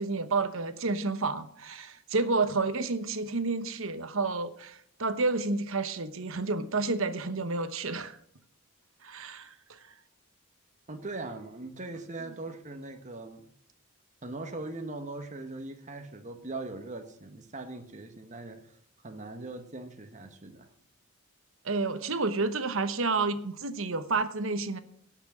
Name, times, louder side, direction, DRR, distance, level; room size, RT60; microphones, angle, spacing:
voice 1, 0.0-8.2 9.0-9.8 21.6-24.8, right 3 dB, 65° right, 1.1 m, -30 dB
voice 2, 10.9-13.5 14.2-18.8 19.0-20.7, right 2 dB, 35° right, 1.3 m, -40 dB
17.5 x 6.1 x 6.2 m
head